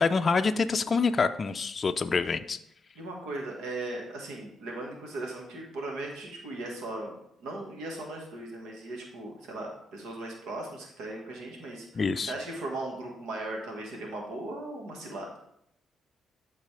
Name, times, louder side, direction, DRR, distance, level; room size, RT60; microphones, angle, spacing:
voice 1, 0.0-2.6 11.9-12.3, left 4 dB, 35° left, 8 dB, 0.4 m, -26 dB
voice 2, 2.9-7.1 7.4-15.3, right 2 dB, 85° right, 0 dB, 1.6 m, -38 dB
11.5 x 4.1 x 3.3 m, 0.74 s
cardioid pair, 90°, 0 cm